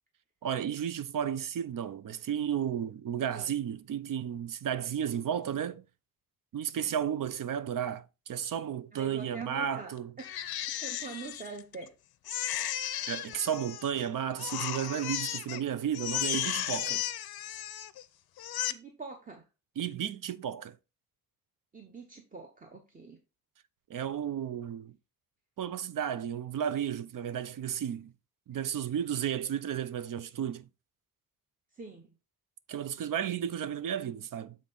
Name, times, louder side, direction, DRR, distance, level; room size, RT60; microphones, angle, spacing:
voice 1, 0.4-5.8 6.5-10.1 13.1-17.0 19.8-20.8 23.9-24.9 25.6-28.1 28.5-30.7 32.7-34.6, right 9 dB, 60° right, 0.5 m, -33 dB
voice 2, 8.9-10.3 10.8-11.9 18.7-19.4 21.7-23.2 31.8-32.1, right 4 dB, 25° right, 0.8 m, -44 dB
Crying sobbing, 10.2-11.9 12.3-14.0 14.4-15.6 15.9-18.0 18.4-18.7, left 12 dB, 85° left, 0.6 m, -35 dB
7.5 x 3.7 x 3.9 m
wide cardioid pair, 140°, 36 cm